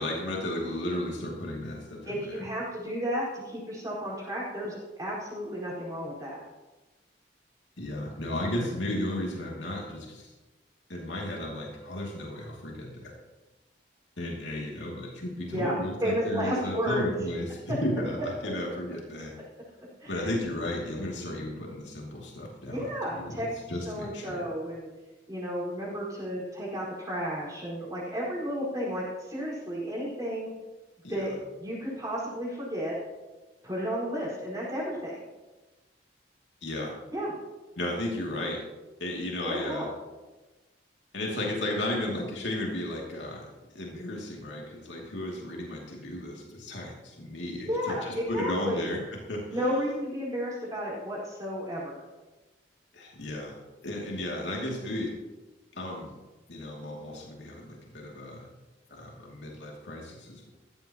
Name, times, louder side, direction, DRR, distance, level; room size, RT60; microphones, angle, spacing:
voice 1, 0.0-2.4 7.8-10.3 10.9-13.2 14.2-17.5 17.8-19.3 20.1-24.5 31.0-31.3 36.6-37.0 37.8-38.6 39.0-39.9 41.1-43.5 43.7-49.0 49.3-49.4 52.9-53.6 53.8-55.1 55.7-56.1 56.5-58.5 58.9-60.5, left 1 dB, 85° left, -2 dB, 2.6 m, -34 dB
voice 2, 2.1-6.4 8.5-8.7 15.4-17.1 20.0-20.4 22.7-23.5 23.8-24.9 25.3-30.5 31.1-32.9 33.6-35.2 37.1-37.3 39.4-39.9 47.7-48.9 49.5-52.0, equal, 20° right, -6 dB, 4.8 m, -32 dB
15.5 x 13.0 x 3.0 m, 1.1 s
head